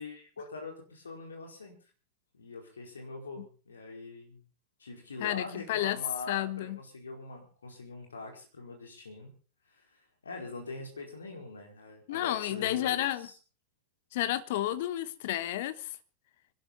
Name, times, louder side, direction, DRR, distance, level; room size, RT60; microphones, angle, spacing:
voice 1, 0.0-1.7 2.3-4.4 4.8-9.3 9.7-13.3, left 3 dB, 70° left, 4.6 m, -43 dB
voice 2, 5.2-6.0 6.3-6.8 12.1-13.3 14.1-15.9, left 14 dB, 50° left, 1.1 m, -31 dB
25.0 x 11.5 x 4.1 m
figure-of-eight pair, 90°, 0 cm